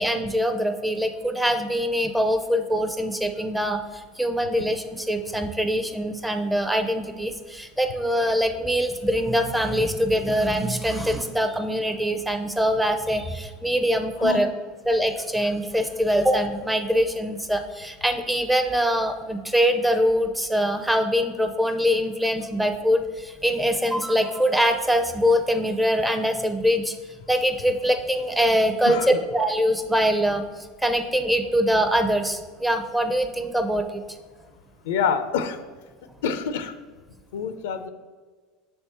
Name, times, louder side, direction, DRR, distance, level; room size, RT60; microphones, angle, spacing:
voice 1, 0.0-3.8 4.2-14.5 14.9-27.0 27.3-30.5 30.8-34.0, equal, 5° right, 7 dB, 0.5 m, -23 dB
voice 2, 34.9-35.6 36.2-36.7 37.3-37.9, left 6 dB, 80° left, 10 dB, 0.4 m, -26 dB
6.7 x 3.4 x 4.2 m, 1.4 s
supercardioid pair, 115°, 0 cm